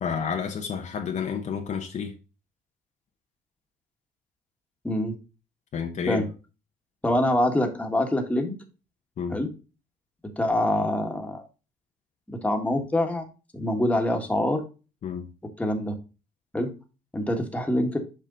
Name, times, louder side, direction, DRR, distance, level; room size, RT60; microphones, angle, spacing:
voice 1, 0.0-2.1 5.7-6.2 9.2-9.4 15.0-15.3, left 7 dB, 45° left, 0.9 m, -30 dB
voice 2, 4.8-5.1 6.1-6.2 7.0-8.5 9.3-9.5 10.4-11.4 12.3-13.2 13.5-14.6 15.6-15.9 16.5-16.7 17.1-18.0, left 1 dB, 10° left, 1.5 m, -25 dB
6.8 x 4.9 x 3.8 m
cardioid pair, 110°, 17 cm